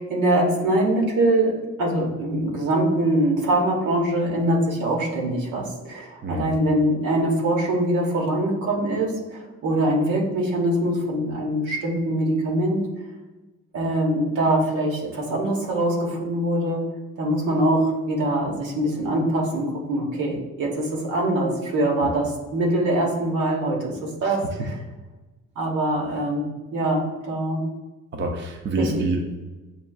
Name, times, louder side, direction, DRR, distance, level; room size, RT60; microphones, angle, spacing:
voice 1, 0.0-12.8 13.7-16.8 17.2-24.5 25.5-27.6 28.8-28.9, right 1 dB, 80° right, -1 dB, 1.2 m, -23 dB
voice 2, 28.1-29.4, right 2 dB, 40° right, 2 dB, 0.6 m, -27 dB
7.3 x 2.5 x 2.4 m, 1.2 s
cardioid pair, 90°, 30 cm